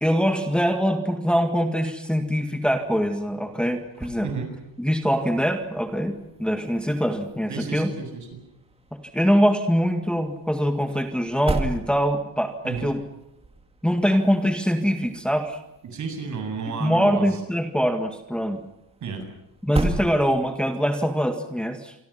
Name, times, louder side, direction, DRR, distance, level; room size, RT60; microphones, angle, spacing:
voice 1, 0.0-4.3 4.8-7.9 9.1-13.0 13.8-15.6 16.8-18.6 19.6-21.9, equal, ahead, 5 dB, 1.9 m, -23 dB
sound 1, 2.7-20.8, right 2 dB, 15° right, 2.3 m, -38 dB
voice 2, 7.5-8.3 12.6-12.9 15.8-17.4 19.0-19.2, right 5 dB, 45° right, 5 dB, 7.5 m, -32 dB
27.5 x 24.0 x 5.8 m, 0.87 s
cardioid pair, 175°, 41 cm